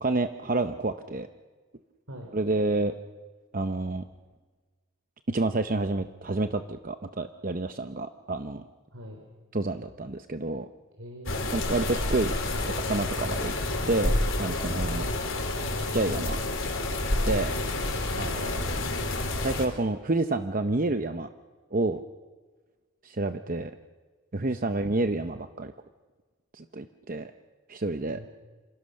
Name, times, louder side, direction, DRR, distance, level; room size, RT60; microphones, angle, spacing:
voice 1, 0.0-1.3 2.3-2.9 3.5-4.0 5.3-8.6 9.5-10.7 11.5-12.3 12.9-13.5 13.9-15.1 15.8-16.4 17.2-17.5 18.1-18.7 19.4-21.3 21.7-22.0 23.0-23.7 24.3-25.7 26.5-27.3 27.7-28.2, right 2 dB, 40° right, 8 dB, 0.8 m, -29 dB
voice 2, 8.9-9.2 11.0-11.7 14.6-14.7 17.3-17.5 24.4-24.7 28.1-28.3, equal, 70° right, 2 dB, 3.9 m, -43 dB
sound 1, 11.3-19.7, left 2 dB, 60° left, 4.2 m, -29 dB
29.0 x 27.5 x 6.5 m, 1.4 s
head